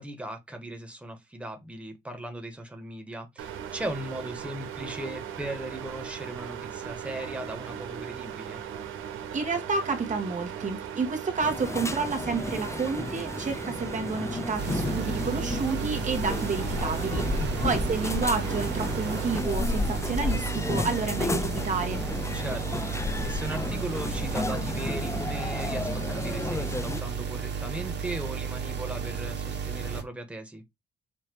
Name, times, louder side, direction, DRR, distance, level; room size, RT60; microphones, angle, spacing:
voice 1, 0.0-8.6 17.4-17.7 22.3-30.6, right 1 dB, 5° right, 1.9 m, -38 dB
sound 1, 3.4-19.4, right 8 dB, 85° right, 1.3 m, -38 dB
voice 2, 9.3-17.3 17.6-22.0, right 4 dB, 40° right, 2.1 m, -30 dB
sound 2, 11.4-27.0, left 3 dB, 15° left, 0.6 m, -32 dB
sound 3, 14.6-30.0, right 6 dB, 60° right, 2.2 m, -33 dB
7.4 x 3.0 x 4.9 m
cardioid pair, 90°, 20 cm